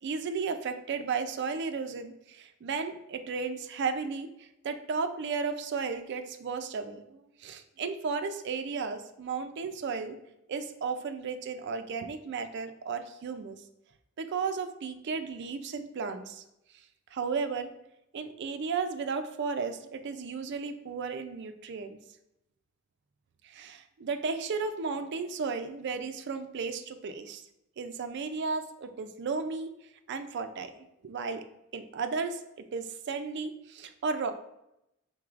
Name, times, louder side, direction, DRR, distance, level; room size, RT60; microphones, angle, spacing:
voice 1, 0.0-10.2 10.5-13.6 14.2-16.4 17.1-17.7 18.1-22.0 23.4-27.4 27.8-29.7 30.1-31.4 31.7-32.4 32.7-34.3, right 5 dB, 55° right, 8 dB, 0.4 m, -34 dB
4.6 x 3.8 x 2.4 m, 0.85 s
head